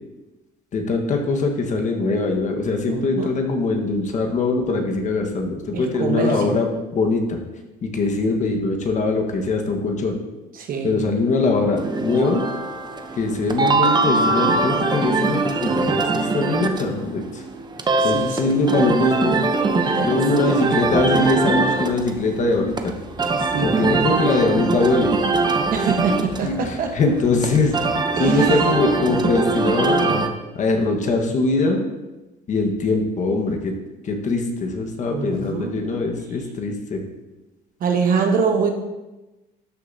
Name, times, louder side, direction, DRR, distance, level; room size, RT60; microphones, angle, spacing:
voice 1, 0.7-7.4 7.8-10.2 10.8-12.4 13.1-17.4 18.0-19.4 20.0-22.9 23.6-25.1 26.4-27.8 28.2-30.3 30.5-31.8 32.5-33.7 34.0-37.0, left 3 dB, 45° left, 3 dB, 1.4 m, -22 dB
voice 2, 2.9-3.3 5.7-6.6 10.5-11.0 18.1-18.6 19.8-20.1 23.5-24.2 25.7-26.9 28.2-28.6 35.1-35.7 37.8-38.7, right 5 dB, 55° right, 4 dB, 1.2 m, -24 dB
sound 1, 11.8-30.3, right 3 dB, 25° right, 0.7 m, -22 dB
sound 2, 20.7-29.7, equal, 65° left, 2.2 m, -42 dB
12.5 x 6.4 x 2.7 m, 1.1 s
cardioid pair, 110°, 17 cm